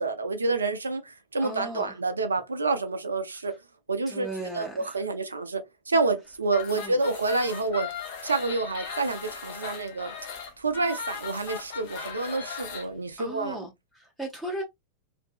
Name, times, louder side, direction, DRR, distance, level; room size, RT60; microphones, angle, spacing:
voice 1, 0.0-3.5 3.9-7.9 8.2-10.1 10.6-13.7, right 3 dB, 75° right, 0.4 m, -28 dB
voice 2, 1.4-1.9 4.1-5.0 6.7-7.0 13.2-14.6, right 1 dB, ahead, 0.7 m, -37 dB
sound 1, 6.5-12.9, left 6 dB, 50° left, 0.7 m, -38 dB
2.6 x 2.6 x 2.4 m
figure-of-eight pair, 90°, 0 cm